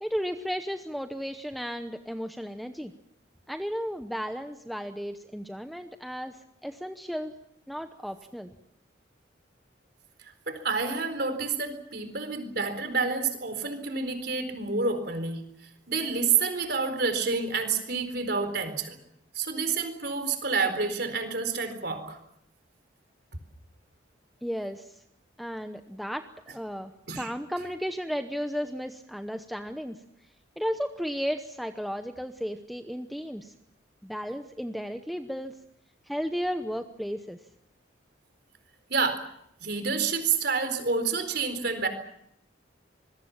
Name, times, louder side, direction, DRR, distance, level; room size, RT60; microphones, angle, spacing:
voice 1, 0.0-2.9 3.5-7.3 7.7-8.5 24.4-25.0 25.4-30.0 30.6-33.5 34.0-35.5 36.1-37.4, equal, ahead, 6 dB, 0.8 m, -34 dB
voice 2, 10.5-19.0 19.3-22.2 27.1-27.3 38.9-39.2 39.6-41.9, right 4 dB, 55° right, 8 dB, 4.2 m, -29 dB
25.5 x 21.5 x 7.3 m, 0.75 s
head